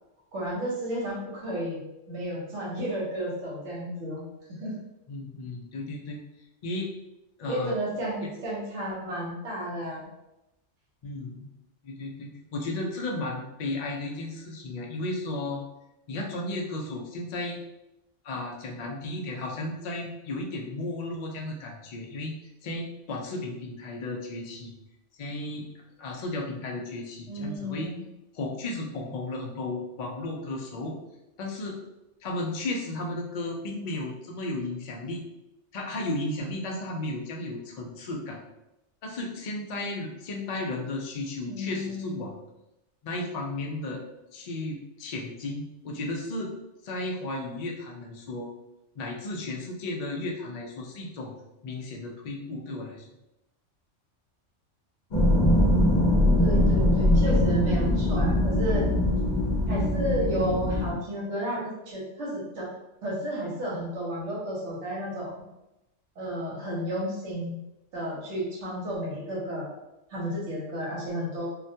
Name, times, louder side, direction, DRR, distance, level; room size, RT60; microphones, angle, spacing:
voice 1, 0.3-1.8 2.1-4.2 4.5-4.7 7.5-10.1 27.3-28.1 41.5-42.2 56.4-58.9 59.7-62.7 63.0-65.4 66.2-67.6 67.9-69.7 70.1-71.5, equal, 75° right, -5 dB, 1.1 m, -32 dB
voice 2, 5.1-6.2 6.6-6.9 7.4-7.7 8.2-8.3 11.0-11.5 11.8-15.6 16.1-17.6 18.2-22.3 22.6-24.8 25.2-25.7 26.0-27.9 28.3-31.0 31.4-31.8 32.2-35.3 35.7-38.4 39.0-42.3 43.0-44.0 44.3-46.5 46.8-48.5 49.0-51.4 51.6-53.1, left 2 dB, 65° left, 0 dB, 0.4 m, -34 dB
sound 1, 55.1-60.9, left 1 dB, 50° left, 0.7 m, -22 dB
2.3 x 2.1 x 2.6 m, 0.92 s
omnidirectional pair, 1.2 m